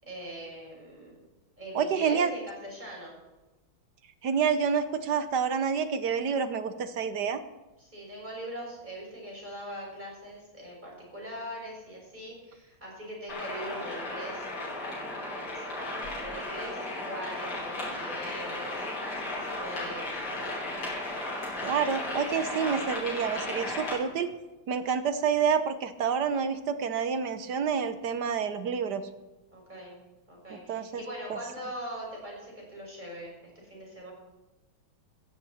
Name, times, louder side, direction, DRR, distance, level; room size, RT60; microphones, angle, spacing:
voice 1, 0.0-1.2 1.6-3.1 7.8-18.7 19.3-20.7 29.5-30.0 30.3-34.1, equal, 20° right, -3 dB, 6.3 m, -41 dB
voice 2, 1.7-2.3 4.2-7.4 21.6-24.3 24.7-29.0 30.5-31.0, right 6 dB, 60° right, 10 dB, 1.3 m, -28 dB
sound 1, 13.3-23.9, left 2 dB, 90° left, 6.4 m, -35 dB
16.5 x 15.0 x 4.3 m, 1.1 s
omnidirectional pair, 2.3 m